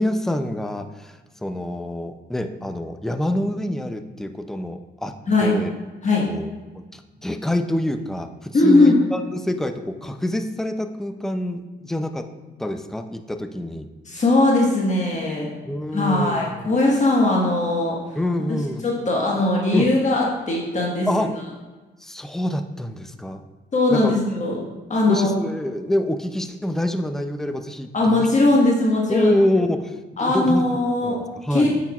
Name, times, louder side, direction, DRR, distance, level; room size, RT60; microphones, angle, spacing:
voice 1, 0.0-5.1 5.4-5.7 6.3-6.5 6.9-12.3 12.6-13.9 14.1-14.2 15.7-16.8 18.2-18.8 19.7-19.9 21.1-21.3 22.0-23.4 23.9-24.2 25.1-28.3 29.1-30.6 31.0-31.8, left 1 dB, ahead, 7 dB, 0.4 m, -26 dB
voice 2, 5.3-5.6 6.0-6.2 8.5-9.0 14.1-15.5 15.9-18.0 18.5-18.6 18.8-21.1 23.7-24.6 24.9-25.3 27.9-29.3 30.2-31.2 31.5-31.7, left 2 dB, 35° left, -3 dB, 1.4 m, -19 dB
8.8 x 5.7 x 2.4 m, 1.2 s
cardioid pair, 90°, 20 cm